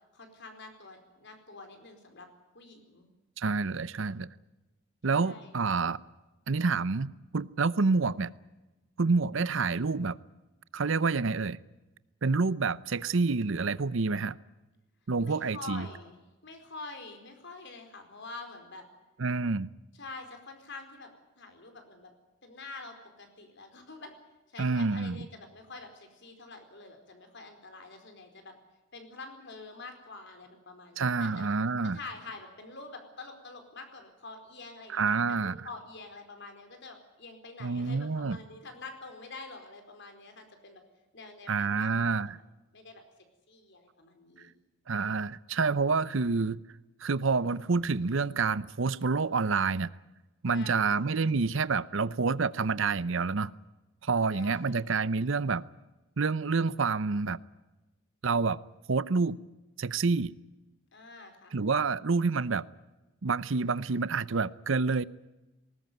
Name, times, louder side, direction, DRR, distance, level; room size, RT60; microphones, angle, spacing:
voice 1, 0.1-2.3 2.5-3.1 5.1-5.8 15.2-18.8 19.9-21.1 21.4-22.1 22.4-24.1 24.5-28.5 28.9-31.5 31.9-40.8 41.1-42.1 42.7-43.0 43.5-44.5 50.5-51.1 54.3-54.9 60.9-61.6, left 3 dB, 60° left, 4.5 m, -46 dB
voice 2, 3.4-4.3 5.0-6.0 6.5-8.3 9.0-10.2 10.7-11.6 12.2-14.4 15.1-15.9 19.2-19.7 24.6-25.3 31.0-32.0 34.9-35.7 37.6-38.4 41.5-42.4 44.9-46.6 47.0-49.9 50.4-53.5 54.0-55.6 56.2-57.4 58.2-58.6 58.9-59.4 59.8-60.3 61.5-62.6 63.2-65.0, right 4 dB, 65° right, 0.7 m, -28 dB
20.0 x 19.0 x 9.3 m
head